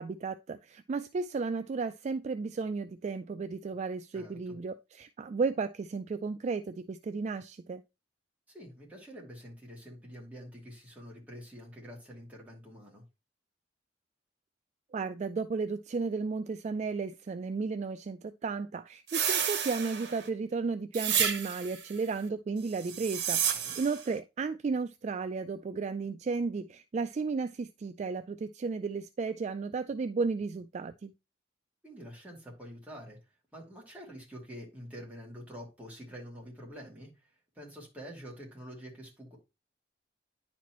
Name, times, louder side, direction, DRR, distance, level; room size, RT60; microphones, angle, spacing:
voice 1, 0.0-7.8 14.9-31.1, right 4 dB, 40° right, 0.3 m, -34 dB
voice 2, 8.5-13.0 23.3-23.7 31.8-33.2 33.5-37.3 37.5-39.4, equal, 10° right, 2.6 m, -47 dB
sound 1, 19.1-20.3 20.9-21.8 22.8-24.0, right 8 dB, 85° right, 1.0 m, -31 dB
10.0 x 4.2 x 3.0 m
head